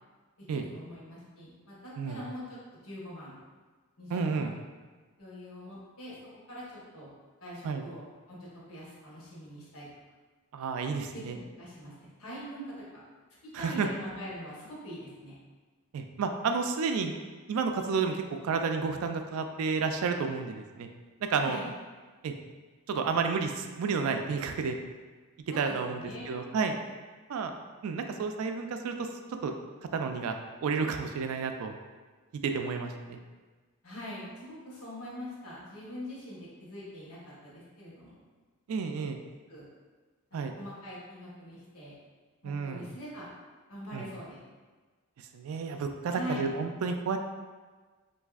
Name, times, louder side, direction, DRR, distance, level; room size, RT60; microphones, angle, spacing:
voice 1, 0.5-2.6 2.8-3.3 4.0-4.5 5.2-6.2 6.5-7.1 7.4-8.0 8.3-9.9 11.1-12.8 13.6-15.4 21.4-21.7 25.5-26.4 33.8-38.2 39.1-39.2 39.5-39.6 40.3-41.9 42.4-43.3 43.7-44.4 46.1-46.5, equal, 85° left, -7 dB, 1.1 m, -43 dB
voice 2, 4.1-4.5 7.6-7.8 10.5-11.3 13.5-13.9 15.9-17.2 17.5-20.9 21.3-21.6 22.2-22.3 22.9-24.8 25.6-26.0 26.3-26.7 27.3-27.5 27.8-28.9 29.4-29.5 29.9-31.7 32.4-33.2 38.7-39.2 40.3-40.5 42.4-42.8 43.9-44.0 45.3-47.2, right 5 dB, 75° right, 6 dB, 0.3 m, -31 dB
4.0 x 2.6 x 2.4 m, 1.4 s
head